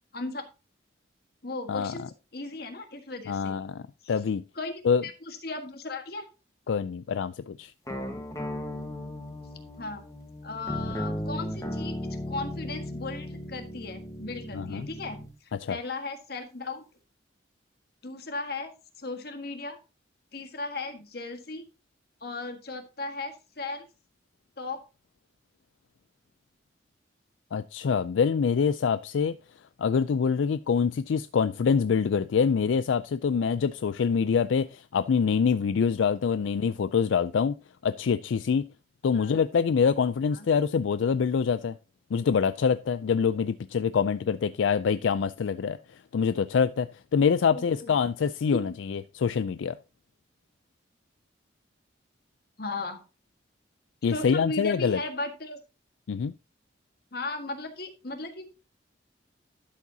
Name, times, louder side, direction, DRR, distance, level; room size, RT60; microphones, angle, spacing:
voice 1, 0.1-0.4 1.4-3.6 4.0-4.1 4.5-6.2 9.8-10.0 10.4-15.2 15.4-16.8 18.0-18.7 19.0-19.8 20.3-21.6 22.2-23.9 24.6-24.8 39.1-39.4 40.3-40.5 47.5-47.9 48.5-48.6 52.6-53.0 54.0-55.6 57.1-58.5, left 3 dB, 55° left, 1.6 m, -36 dB
voice 2, 1.7-2.1 3.3-3.8 4.1-4.4 4.8-5.0 6.7-7.7 14.5-14.9 15.6-15.8 27.5-29.4 29.8-37.5 37.8-38.7 39.0-41.7 42.1-45.8 46.1-49.8 54.0-55.0 56.1-56.3, left 6 dB, 80° left, 0.4 m, -25 dB
sound 1, 7.9-15.3, left 1 dB, 15° left, 1.3 m, -36 dB
12.0 x 7.3 x 2.8 m
head